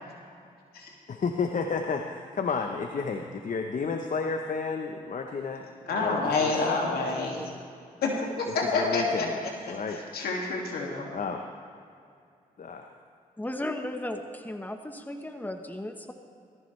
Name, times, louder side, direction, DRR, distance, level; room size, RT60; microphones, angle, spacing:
voice 1, 1.1-6.6 8.5-9.4 9.7-10.0 11.1-11.4 12.6-13.0, left 5 dB, 60° left, 4 dB, 1.0 m, -32 dB
voice 2, 5.9-7.5 8.0-9.3 9.7-9.8 10.1-11.1, left 3 dB, 90° left, -1 dB, 2.4 m, -28 dB
voice 3, 13.4-16.1, left 1 dB, 10° left, 5 dB, 1.2 m, -35 dB
19.0 x 14.5 x 3.3 m, 2.4 s
cardioid pair, 60°, 15 cm